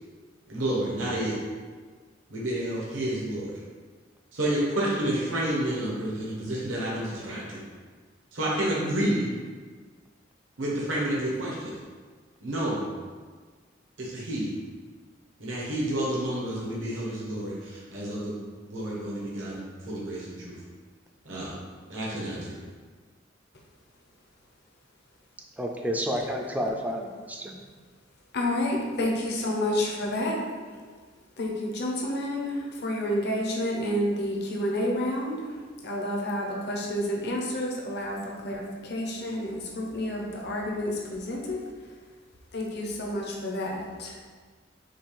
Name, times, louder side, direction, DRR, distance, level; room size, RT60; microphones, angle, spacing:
voice 1, 0.5-1.4 2.3-3.6 4.3-7.6 8.3-9.3 10.6-11.8 12.4-12.8 14.0-14.5 15.4-18.4 18.7-20.6 21.2-21.5 21.9-22.6, right 1 dB, 85° right, -6 dB, 1.1 m, -30 dB
voice 2, 25.6-27.6, equal, 10° right, 1 dB, 0.4 m, -30 dB
voice 3, 28.3-30.4 30.7-30.8 31.4-41.9 42.5-44.2, left 1 dB, 60° left, -1 dB, 0.8 m, -30 dB
6.2 x 2.4 x 3.3 m, 1.5 s
head